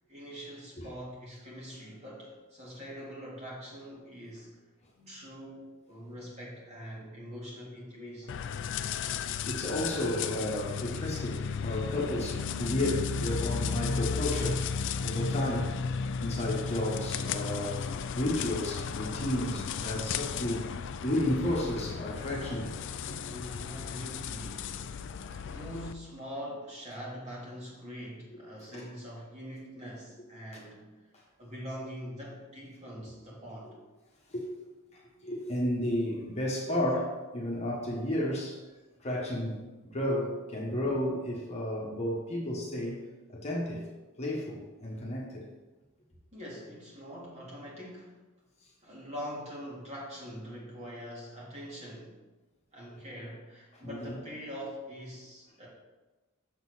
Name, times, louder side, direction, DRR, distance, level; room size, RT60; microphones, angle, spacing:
voice 1, 0.1-4.7 5.1-8.4 23.2-24.9 25.4-30.9 31.4-33.8 46.3-48.1 48.8-52.2 52.7-55.7, equal, 30° right, -5 dB, 2.1 m, -43 dB
sound 1, 8.3-25.9, left 6 dB, 55° left, 0.4 m, -34 dB
voice 2, 9.5-15.7 16.2-17.8 18.1-20.7 21.0-22.7 23.0-23.1 25.2-25.3 28.5-28.8 34.3-34.5 34.9-38.6 39.0-43.0 43.3-43.9 44.2-45.5 53.8-54.2, left 1 dB, 30° left, -3 dB, 1.3 m, -32 dB
6.9 x 4.0 x 6.2 m, 1.2 s
head